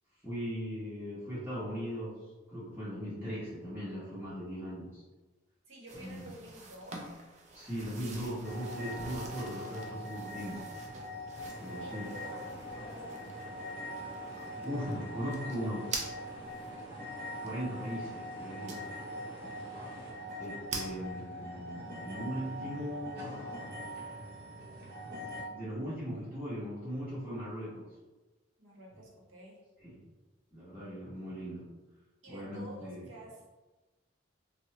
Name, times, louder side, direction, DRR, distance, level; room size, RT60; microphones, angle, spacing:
voice 1, 0.2-2.2 2.5-5.0 6.0-6.3 7.5-10.7 11.6-12.1 13.8-14.3 14.6-16.0 17.4-18.9 20.4-23.5 25.4-27.9 29.8-29.9 30.5-31.7 32.3-33.1, equal, 10° right, -11 dB, 0.8 m, -39 dB
voice 2, 5.7-7.2 11.8-13.4 19.3-20.2 28.6-29.6 32.2-33.4, equal, 80° right, -3 dB, 0.9 m, -50 dB
sound 1, 5.9-16.8 17.5-17.6 18.7-19.2 19.6-19.7 19.9-20.0 20.3-20.9, right 3 dB, 35° right, 0.4 m, -45 dB
sound 2, 8.4-25.4, equal, 55° right, 0.8 m, -43 dB
sound 3, 11.3-20.1, equal, 25° left, 0.5 m, -51 dB
3.6 x 2.0 x 2.8 m, 1.2 s
head